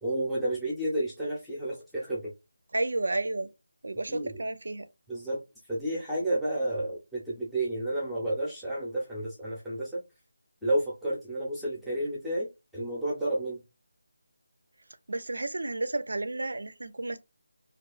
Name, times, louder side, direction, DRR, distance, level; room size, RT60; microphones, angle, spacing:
voice 1, 0.0-2.3 4.1-4.3 5.1-5.4 5.7-10.0 10.6-12.5 12.7-13.6, right 1 dB, ahead, 0.6 m, -31 dB
voice 2, 2.7-3.5 3.8-4.9 15.1-17.2, right 2 dB, 75° right, 0.4 m, -31 dB
2.4 x 2.3 x 2.4 m
figure-of-eight pair, 170°, 0 cm